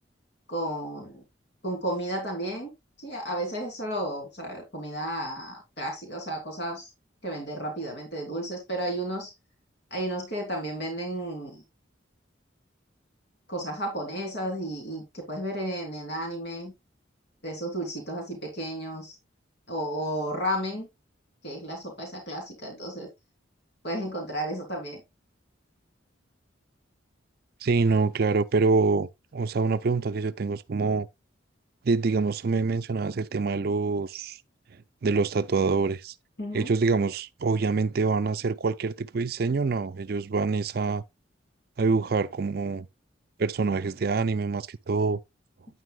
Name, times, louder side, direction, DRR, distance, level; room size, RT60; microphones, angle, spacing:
voice 1, 0.5-1.2 1.6-2.7 3.0-6.9 7.2-9.3 9.9-11.6 13.5-16.7 17.4-19.1 19.7-20.9 21.4-23.1 23.8-25.0 36.4-36.7, right 1 dB, 60° left, 3.1 m, -33 dB
voice 2, 27.6-31.1 31.8-34.4 35.0-36.1 36.5-41.0 41.8-42.9 43.4-45.2, right 4 dB, 50° right, 0.4 m, -25 dB
9.5 x 9.1 x 2.3 m
head